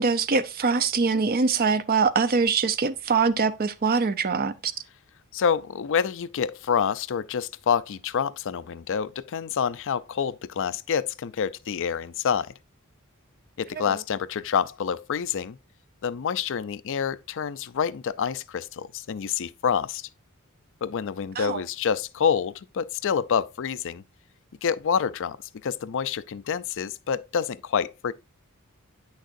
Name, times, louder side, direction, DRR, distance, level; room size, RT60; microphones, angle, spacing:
voice 1, 0.0-4.7 13.8-13.9 21.4-21.6, right 4 dB, 45° right, 0.6 m, -23 dB
voice 2, 5.3-12.5 13.6-15.6 16.0-20.1 20.8-24.0 24.6-25.4 25.6-28.1, left 7 dB, 60° left, 0.4 m, -27 dB
9.1 x 6.4 x 2.5 m
head